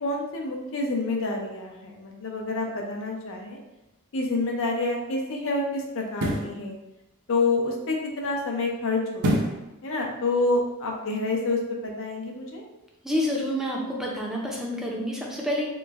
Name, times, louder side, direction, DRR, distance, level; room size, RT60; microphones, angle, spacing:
voice 1, 0.0-3.6 4.1-6.8 7.3-12.6, left 2 dB, 65° left, 1 dB, 0.6 m, -28 dB
sound 1, 4.2-4.4 6.1-6.6 9.2-9.7 10.1-10.2, equal, 85° right, 0.6 m, -25 dB
voice 2, 13.0-15.7, equal, ahead, -3 dB, 0.5 m, -28 dB
3.0 x 2.1 x 3.4 m, 0.95 s
head